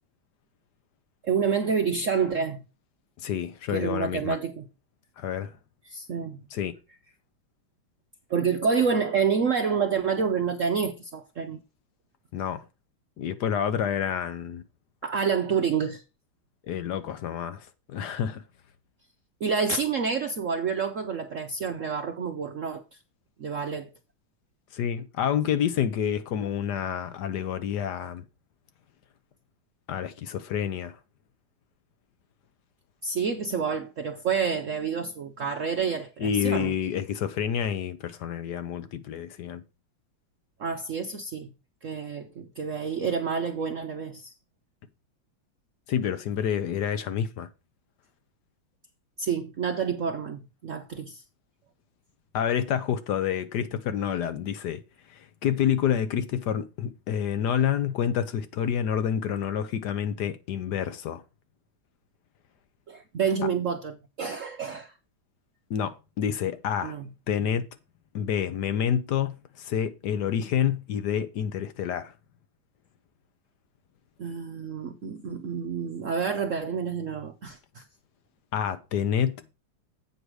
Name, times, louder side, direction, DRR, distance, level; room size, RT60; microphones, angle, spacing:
voice 1, 1.2-2.6 3.7-4.7 5.9-6.4 8.3-11.6 15.0-16.0 19.4-23.0 23.4-23.9 33.0-36.7 40.6-41.5 41.8-44.3 49.2-51.2 62.9-64.9 66.8-67.1 74.2-77.8, right 6 dB, 70° right, 0.7 m, -28 dB
voice 2, 3.2-4.4 5.2-5.6 6.5-6.7 12.3-12.6 13.2-14.6 16.7-18.4 24.7-28.2 29.9-31.0 36.2-39.6 45.9-47.5 52.3-54.8 55.1-61.2 65.7-67.0 67.3-67.6 68.1-72.1 78.5-79.4, left 9 dB, 65° left, 1.2 m, -28 dB
8.1 x 4.9 x 6.1 m
omnidirectional pair, 2.2 m